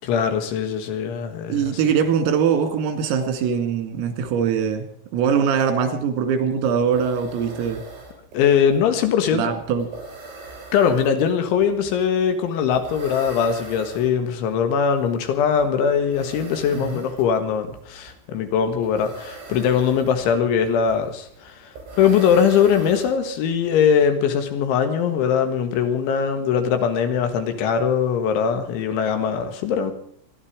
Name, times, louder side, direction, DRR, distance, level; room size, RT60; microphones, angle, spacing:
voice 1, 0.0-1.8 8.3-9.5 10.7-29.9, left 7 dB, 70° left, 7 dB, 3.8 m, -21 dB
voice 2, 1.5-4.9 5.1-7.8 9.3-9.9 16.7-17.0, right 7 dB, 90° right, 7 dB, 4.9 m, -22 dB
sound 1, 6.5-23.6, right 2 dB, 65° right, 7.5 m, -41 dB
26.5 x 11.0 x 4.9 m, 0.62 s
omnidirectional pair, 5.9 m